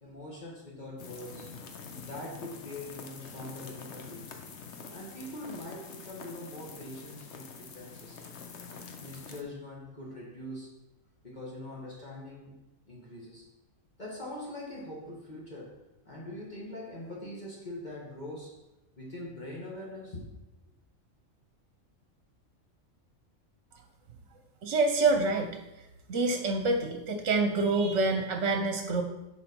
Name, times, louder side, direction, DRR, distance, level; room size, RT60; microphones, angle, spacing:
voice 1, 0.0-1.5 2.0-4.2 4.9-8.2 9.0-10.7 11.2-12.5 12.9-13.5 14.0-18.6 19.0-20.3, left 1 dB, 35° left, -4 dB, 1.7 m, -43 dB
sound 1, 1.0-9.4, left 5 dB, 60° left, 1.1 m, -46 dB
voice 2, 24.6-25.6 26.1-29.0, right 3 dB, 65° right, 4 dB, 1.1 m, -26 dB
7.4 x 5.2 x 5.4 m, 0.99 s
omnidirectional pair, 1.4 m